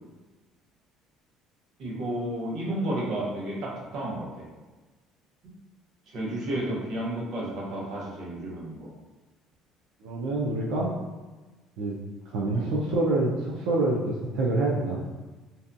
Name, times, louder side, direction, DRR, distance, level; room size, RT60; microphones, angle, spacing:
voice 1, 1.8-4.5 6.1-8.9 12.5-12.7, right 1 dB, 55° right, -4 dB, 0.7 m, -32 dB
voice 2, 10.0-10.9 11.8-12.0 12.3-15.0, right 2 dB, 90° right, -4 dB, 0.4 m, -26 dB
2.6 x 2.2 x 2.5 m, 1.2 s
cardioid pair, 160°, 0 cm